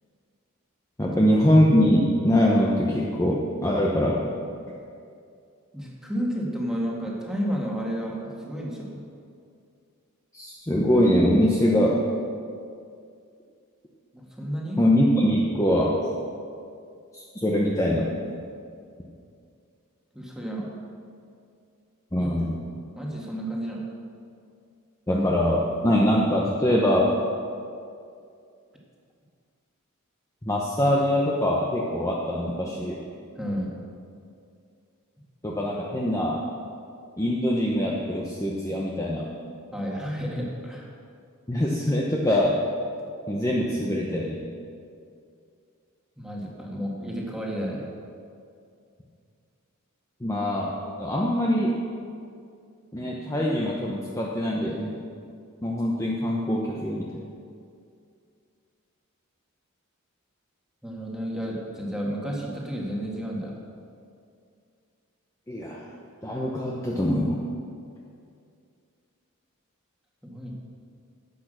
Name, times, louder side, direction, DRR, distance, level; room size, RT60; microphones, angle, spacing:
voice 1, 1.0-4.3 10.3-12.1 14.8-15.9 17.1-18.1 22.1-22.6 25.1-27.1 30.4-33.0 35.4-36.4 37.2-39.3 41.5-42.5 43.3-44.4 50.2-50.7 51.0-51.7 52.9-54.9 55.6-57.1 65.5-65.9 66.2-67.4, equal, 15° left, -3 dB, 0.9 m, -23 dB
voice 2, 5.7-9.0 14.1-14.8 20.1-20.7 22.1-22.3 22.9-23.8 33.4-33.7 39.7-40.9 46.2-47.9 60.8-63.5 70.2-70.5, equal, 5° right, -3 dB, 1.9 m, -31 dB
10.5 x 8.4 x 6.7 m, 2.4 s
head